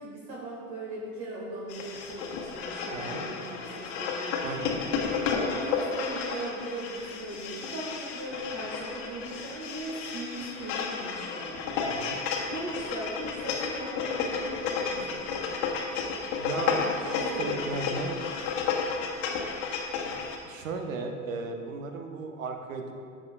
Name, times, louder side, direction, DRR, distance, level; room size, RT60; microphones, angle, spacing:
voice 1, 0.0-5.0 5.6-11.6 12.5-14.4 14.7-15.4 16.8-18.2, right 1 dB, 50° right, -5 dB, 1.9 m, -39 dB
sound 1, 1.7-20.4, left 5 dB, 65° left, 1.2 m, -32 dB
voice 2, 4.4-4.8 11.8-12.2 16.4-18.1 20.4-22.9, right 3 dB, 80° right, 4 dB, 0.9 m, -35 dB
10.5 x 7.3 x 2.4 m, 2.3 s
hypercardioid pair, 75°, 39 cm